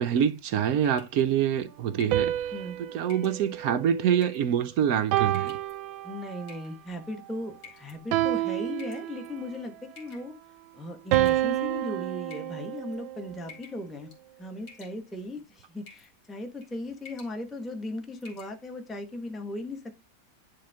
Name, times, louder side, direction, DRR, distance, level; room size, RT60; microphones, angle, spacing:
voice 1, 0.0-2.5 2.9-5.6, right 9 dB, 75° right, 0.8 m, -26 dB
sound 1, 0.8-1.2 2.0-2.3 3.1-3.4 4.2-4.5 5.3-5.7 6.5-6.9 7.6-8.0 8.8-9.4 10.0-10.3 11.1-11.8 12.3-12.9 13.5-13.8 14.1-14.4 14.7-15.2 15.9-16.1 16.5-16.7 17.0-17.4 17.7-17.8 18.2-18.5, left 5 dB, 75° left, 2.8 m, -49 dB
sound 2, 2.1-4.5 5.1-6.6 8.1-9.6 11.1-13.4, right 14 dB, 90° right, 1.3 m, -29 dB
voice 2, 6.0-10.3 10.7-14.1 14.4-20.0, left 1 dB, ahead, 0.7 m, -37 dB
9.9 x 3.5 x 3.4 m
omnidirectional pair, 2.1 m